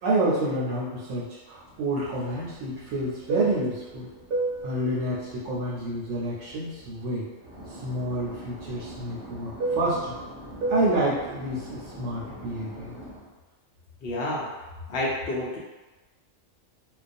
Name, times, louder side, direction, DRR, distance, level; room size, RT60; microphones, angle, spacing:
voice 1, 0.0-4.1 4.6-7.3 7.7-10.1 10.7-12.9, right 1 dB, 80° right, -5 dB, 1.0 m, -29 dB
Fixed-wing aircraft airplane, 1.7-7.1 7.4-13.2, right 2 dB, 50° right, 0.6 m, -34 dB
voice 2, 14.0-14.5 14.9-15.6, left 1 dB, 60° left, -4 dB, 0.7 m, -29 dB
2.3 x 2.2 x 2.5 m, 1.1 s
omnidirectional pair, 1.3 m